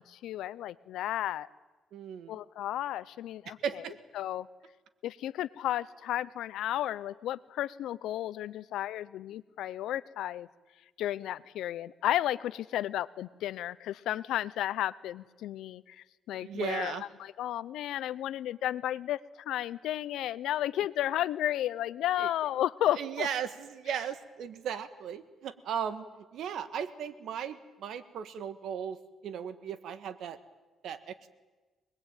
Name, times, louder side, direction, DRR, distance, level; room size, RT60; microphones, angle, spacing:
voice 1, 0.0-1.5 2.3-3.6 4.1-4.5 5.0-10.5 11.0-23.3, left 12 dB, 85° left, 17 dB, 0.8 m, -33 dB
voice 2, 1.9-2.4 3.4-3.9 16.3-17.0 22.2-22.3 23.0-29.0 29.2-30.4 30.8-31.3, right 8 dB, 75° right, 10 dB, 1.8 m, -36 dB
24.5 x 20.5 x 9.1 m, 1.2 s
cardioid pair, 100°, 0 cm